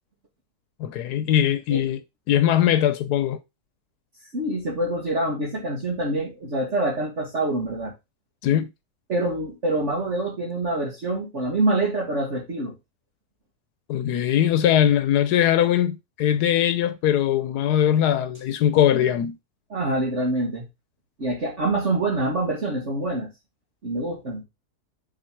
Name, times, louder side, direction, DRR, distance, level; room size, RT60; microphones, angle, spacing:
voice 1, 0.8-2.0 2.3-3.4 8.4-8.7 13.9-19.4, left 10 dB, 85° left, 1.3 m, -21 dB
voice 2, 4.3-7.9 9.1-12.7 19.7-20.7 21.2-23.3 23.8-24.4, right 2 dB, 50° right, 2.1 m, -26 dB
7.8 x 4.0 x 5.7 m
omnidirectional pair, 1.7 m